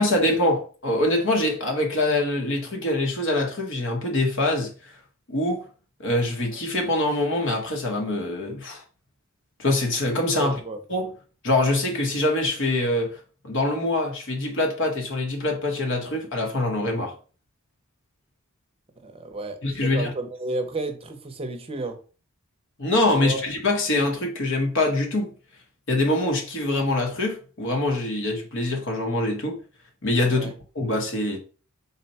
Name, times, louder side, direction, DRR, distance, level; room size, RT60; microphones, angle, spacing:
voice 1, 0.0-4.9 5.3-5.7 6.0-8.8 9.6-10.6 10.9-11.1 11.4-13.2 13.4-17.2 19.6-20.1 22.8-25.3 25.9-29.6 30.0-31.4, left 2 dB, 65° left, 1.0 m, -24 dB
voice 2, 10.3-10.8 19.0-22.0 23.1-23.4 30.3-30.6, right 2 dB, 25° right, 0.6 m, -32 dB
4.0 x 2.2 x 4.1 m
head